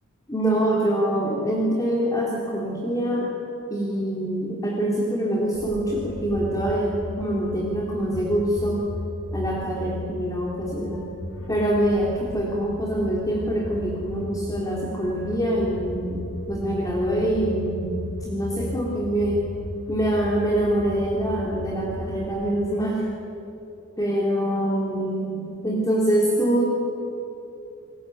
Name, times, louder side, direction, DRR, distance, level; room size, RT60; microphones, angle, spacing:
voice 1, 0.3-3.3 3.7-8.8 9.3-11.1 11.5-17.9 18.2-19.4 19.9-23.1 24.0-26.6, right 1 dB, 15° left, -3 dB, 3.6 m, -25 dB
sound 1, 5.5-22.2, left 1 dB, 80° left, 4.3 m, -36 dB
30.0 x 20.0 x 9.5 m, 2.9 s
head